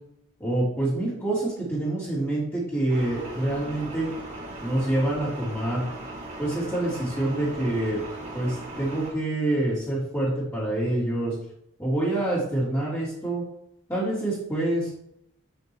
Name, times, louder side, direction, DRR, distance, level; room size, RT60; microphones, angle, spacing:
voice 1, 0.4-4.1 4.6-5.8 6.4-8.0 8.3-11.3 11.8-13.4 13.9-14.9, right 1 dB, 10° left, -9 dB, 3.2 m, -26 dB
sound 1, 2.9-9.1, right 2 dB, 35° right, 2.2 m, -38 dB
8.7 x 8.0 x 3.1 m, 0.75 s
head